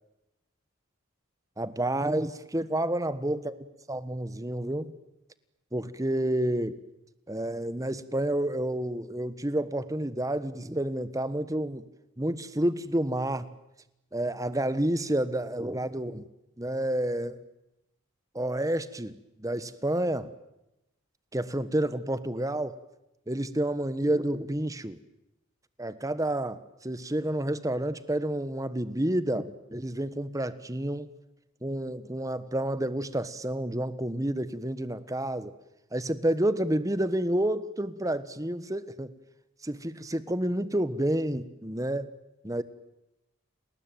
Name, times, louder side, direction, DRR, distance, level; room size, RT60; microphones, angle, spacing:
voice 1, 1.6-3.6 3.9-4.9 5.7-6.8 7.3-11.8 12.2-13.5 14.1-16.2 16.6-17.4 18.3-19.1 19.4-20.3 21.3-22.8 23.3-25.0 25.8-31.1 31.6-35.5 35.9-39.1 39.6-42.1 42.4-42.6, right 1 dB, 15° right, 14 dB, 1.3 m, -29 dB
30.0 x 20.0 x 9.1 m, 0.92 s
head